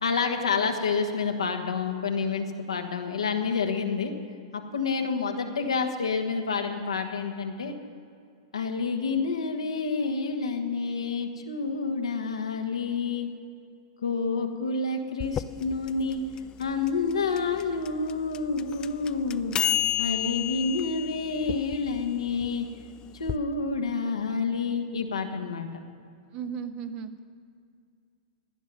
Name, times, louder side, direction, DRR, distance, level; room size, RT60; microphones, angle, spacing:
voice 1, 0.0-4.1 4.5-7.7 8.5-13.3 14.0-16.2 16.6-19.5 20.0-22.7 23.1-25.7, left 4 dB, 85° left, 4 dB, 1.4 m, -28 dB
sound 1, 15.2-23.4, left 11 dB, 25° left, 0.4 m, -32 dB
voice 2, 26.3-27.2, right 7 dB, 40° right, 9 dB, 1.0 m, -35 dB
16.5 x 10.5 x 5.4 m, 2.3 s
hypercardioid pair, 110°, 3 cm